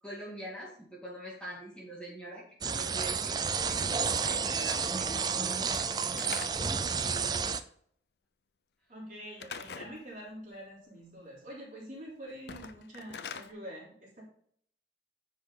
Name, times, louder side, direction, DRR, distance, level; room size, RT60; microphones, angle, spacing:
voice 1, 0.0-5.7 6.2-6.4, equal, 5° left, -5 dB, 2.1 m, -45 dB
sound 1, 2.6-7.6, right 5 dB, 25° right, 0.4 m, -31 dB
Slam / Wood, 5.6-6.9 9.4-10.0 12.4-13.5, left 6 dB, 70° left, 0.6 m, -43 dB
voice 2, 8.9-14.2, equal, 45° right, -5 dB, 3.4 m, -46 dB
10.0 x 5.0 x 3.9 m, 0.62 s
head